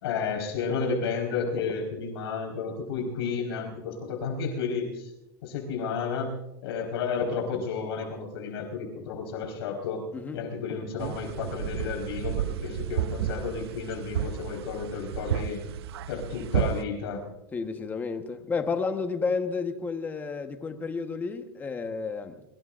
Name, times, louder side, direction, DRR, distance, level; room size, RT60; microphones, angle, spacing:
voice 1, 0.0-5.1 5.4-6.3 6.6-10.0 10.3-15.6 16.1-17.2, left 5 dB, 85° left, 4.6 m, -32 dB
sound 1, 11.0-16.8, right 10 dB, 85° right, 0.7 m, -32 dB
voice 2, 17.5-22.4, left 4 dB, 15° left, 1.2 m, -31 dB
23.5 x 23.0 x 2.5 m
supercardioid pair, 165°, 13 cm